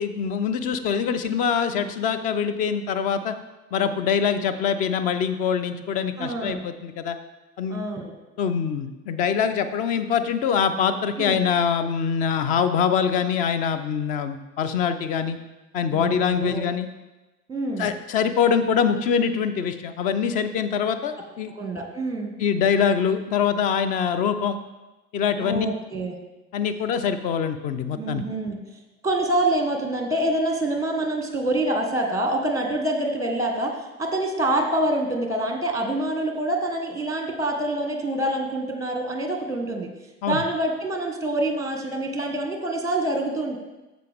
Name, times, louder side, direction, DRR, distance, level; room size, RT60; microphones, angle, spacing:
voice 1, 0.0-3.3 3.7-7.2 7.6-7.8 8.4-15.4 15.7-16.9 17.8-21.5 22.4-24.6 25.1-25.7 26.5-28.2 40.2-40.4, left 7 dB, 20° left, 11 dB, 0.3 m, -24 dB
voice 2, 6.2-6.6 7.7-8.1 11.2-11.4 15.9-16.7 17.5-17.9 21.5-22.3 25.4-26.2 28.0-28.6 29.0-39.9 40.2-43.6, right 1 dB, 5° right, 4 dB, 1.4 m, -26 dB
14.0 x 5.0 x 3.5 m, 1.1 s
figure-of-eight pair, 80°, 46 cm